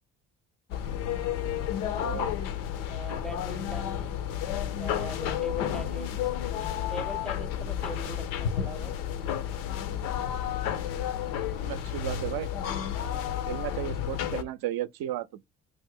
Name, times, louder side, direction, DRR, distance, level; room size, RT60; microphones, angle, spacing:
sound 1, 0.7-14.4, left 9 dB, 85° left, 0.6 m, -31 dB
voice 1, 2.0-2.5 11.6-12.5 13.5-15.4, right 13 dB, 60° right, 0.5 m, -34 dB
voice 2, 2.9-4.1 4.8-6.3 6.9-9.0 13.0-13.4, equal, ahead, 0.5 m, -41 dB
3.0 x 2.1 x 3.6 m
hypercardioid pair, 50°, 41 cm